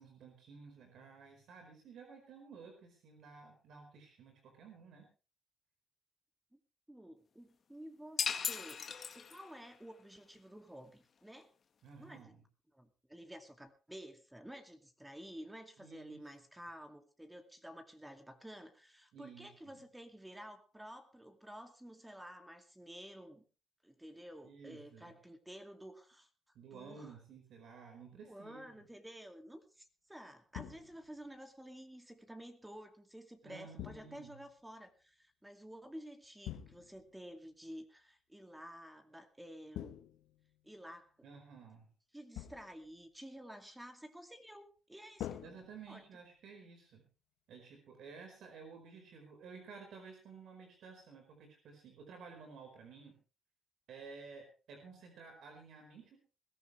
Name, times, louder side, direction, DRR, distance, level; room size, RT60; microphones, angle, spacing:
voice 1, 0.0-5.1 11.8-12.4 15.8-16.2 19.1-19.8 24.4-25.2 26.5-28.7 33.4-34.4 41.2-41.9 45.4-47.0 47.5-53.2 53.9-56.2, right 5 dB, 75° right, 3 dB, 4.7 m, -54 dB
voice 2, 6.9-11.5 12.0-12.2 12.7-23.4 23.8-26.3 26.7-27.1 28.3-40.0 40.6-41.1 42.1-45.3 45.9-46.0, equal, 10° right, 5 dB, 2.4 m, -52 dB
sound 1, 8.2-9.7, left 6 dB, 50° left, 1.7 m, -37 dB
sound 2, 30.5-31.2 33.8-34.5 36.4-37.1 39.7-40.7 42.4-42.9 45.2-46.3, left 12 dB, 85° left, 1.0 m, -47 dB
21.0 x 14.0 x 3.3 m, 0.33 s
cardioid pair, 90°, 0 cm